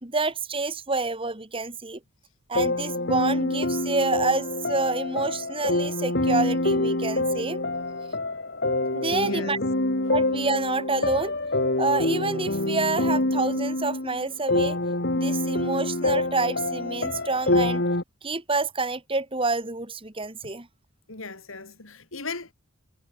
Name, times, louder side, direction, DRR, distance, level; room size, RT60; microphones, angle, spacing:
voice 1, 0.0-2.0 2.5-7.6 8.9-9.6 10.1-11.3 11.8-14.8 15.1-17.8 18.2-20.7, right 3 dB, 25° right, 2.2 m, -28 dB
sound 1, 2.5-18.0, left 2 dB, 55° left, 2.6 m, -26 dB
voice 2, 9.2-9.5 21.1-22.5, left 3 dB, 75° left, 3.5 m, -37 dB
head